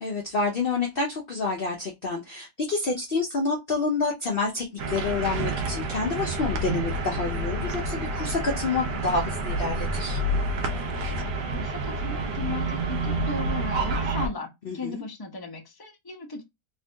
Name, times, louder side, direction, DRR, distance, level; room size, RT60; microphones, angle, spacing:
voice 1, 0.0-10.2 14.7-15.0, left 3 dB, 55° left, 0.6 m, -28 dB
sound 1, 4.8-14.3, right 2 dB, 75° right, 1.4 m, -28 dB
voice 2, 11.5-16.4, left 3 dB, 20° left, 0.7 m, -36 dB
3.5 x 2.8 x 3.3 m
omnidirectional pair, 1.9 m